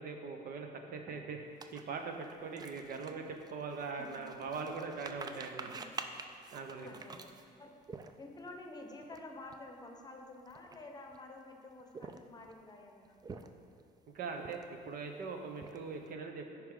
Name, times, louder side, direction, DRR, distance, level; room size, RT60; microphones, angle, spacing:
voice 1, 0.0-5.8 6.5-6.9 14.1-16.4, right 4 dB, 60° right, 4 dB, 0.8 m, -41 dB
voice 2, 0.7-1.1 3.9-4.5 5.6-6.0 6.4-7.8 8.2-13.2, left 2 dB, 25° left, 3 dB, 0.8 m, -51 dB
sound 1, 1.6-8.5 9.0-9.2 9.5-9.7 10.3-11.2 11.8-12.5 13.0-13.8 14.3-14.9 15.3-16.1, right 4 dB, 25° right, 0.4 m, -48 dB
10.0 x 4.7 x 3.8 m, 2.3 s
cardioid pair, 110°, 17 cm